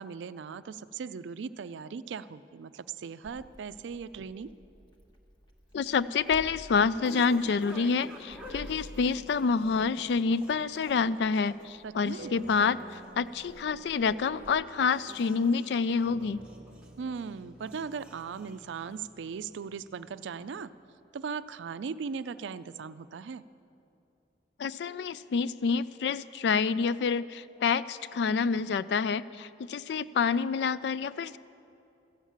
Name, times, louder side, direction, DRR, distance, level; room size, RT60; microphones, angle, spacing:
voice 1, 0.0-4.5 11.8-12.3 17.0-20.7 21.1-23.4, right 5 dB, 80° right, 14 dB, 0.4 m, -38 dB
Meow, 3.2-14.5, equal, 25° left, 1.1 m, -53 dB
voice 2, 5.7-16.4 24.6-31.4, left 5 dB, 65° left, 16 dB, 0.3 m, -28 dB
sound 1, 5.7-19.3, equal, 5° right, 1.1 m, -51 dB
sound 2, 12.2-20.9, right 2 dB, 35° right, 0.9 m, -51 dB
13.5 x 7.3 x 8.5 m, 2.7 s
head